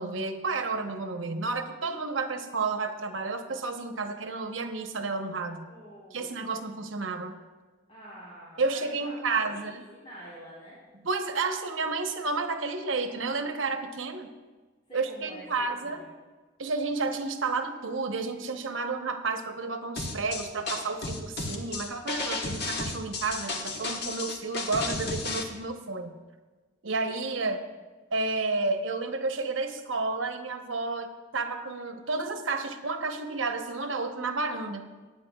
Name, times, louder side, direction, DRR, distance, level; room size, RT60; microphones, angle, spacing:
voice 1, 0.0-5.6 6.1-7.3 8.6-9.8 11.0-14.3 14.9-16.0 16.6-26.1 26.8-27.6 28.1-34.9, right 3 dB, 85° right, 6 dB, 1.0 m, -31 dB
voice 2, 5.7-6.5 7.9-10.8 14.9-16.1 27.3-27.5, equal, 35° left, -9 dB, 3.3 m, -47 dB
sound 1, 20.0-25.4, left 3 dB, 60° left, 1.3 m, -33 dB
18.0 x 9.8 x 2.3 m, 1.3 s
head